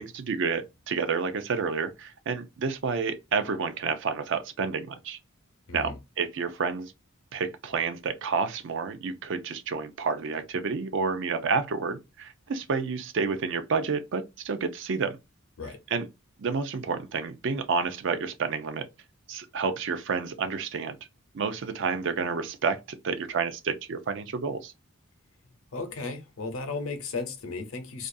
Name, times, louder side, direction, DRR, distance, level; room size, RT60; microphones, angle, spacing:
voice 1, 0.0-5.2 5.7-6.9 7.3-15.2 15.9-16.1 16.4-18.9 19.3-21.0 21.3-24.7, right 5 dB, 60° right, 0.4 m, -30 dB
voice 2, 25.7-28.1, left 4 dB, 85° left, 0.7 m, -35 dB
2.5 x 2.2 x 2.5 m
head